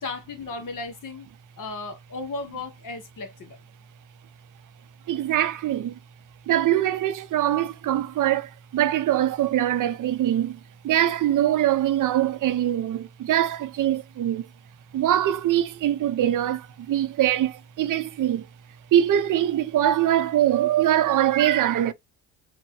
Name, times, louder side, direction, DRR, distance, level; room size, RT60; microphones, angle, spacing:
voice 1, 0.0-1.3 1.6-3.6, left 3 dB, 55° left, 1.5 m, -35 dB
voice 2, 5.1-6.0 6.5-14.5 14.9-18.5 18.9-21.9, right 12 dB, 55° right, 0.6 m, -23 dB
4.4 x 2.2 x 3.0 m
supercardioid pair, 80°, 38 cm